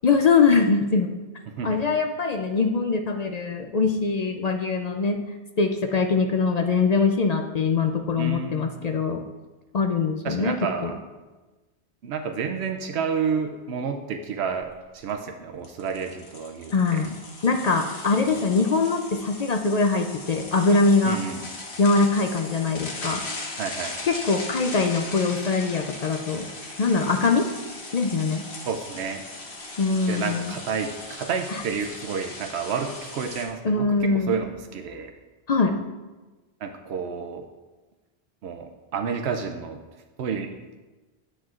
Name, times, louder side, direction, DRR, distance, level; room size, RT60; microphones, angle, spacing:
voice 1, 0.0-1.1 1.6-5.2 5.6-9.2 9.7-10.6 10.8-10.9 16.7-17.2 17.4-21.2 21.8-23.2 24.1-26.5 26.8-27.5 27.9-28.4 29.8-30.5 33.6-34.4 35.5-35.8, left 4 dB, 55° left, 4 dB, 0.5 m, -22 dB
voice 2, 1.5-1.9 8.2-9.0 10.2-11.0 12.0-17.0 18.3-18.4 21.0-21.4 23.6-24.0 28.7-29.2 30.1-35.1 36.6-37.5 38.4-39.8 40.2-40.5, right 6 dB, 85° right, 5 dB, 0.9 m, -30 dB
sound 1, 14.6-14.7 15.0-15.1 15.6-33.5, left 2 dB, 85° left, 1.5 m, -38 dB
10.0 x 7.5 x 2.4 m, 1.2 s
omnidirectional pair, 1.1 m